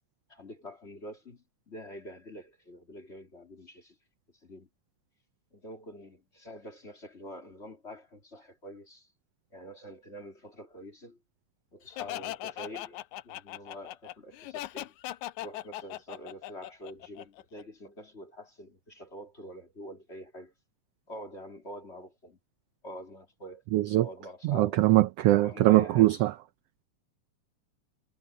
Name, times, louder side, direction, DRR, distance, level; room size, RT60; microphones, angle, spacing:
voice 1, 0.3-4.0 4.4-4.7 5.5-9.1 9.5-11.2 11.7-15.0 15.4-20.5 21.1-22.4 22.8-23.6 24.0-24.8 25.3-26.1, equal, 20° left, 2.8 m, -46 dB
Laughter, 12.0-17.6, left 15 dB, 90° left, 2.1 m, -39 dB
voice 2, 23.7-24.0 24.4-26.3, right 16 dB, 75° right, 1.5 m, -22 dB
omnidirectional pair, 3.3 m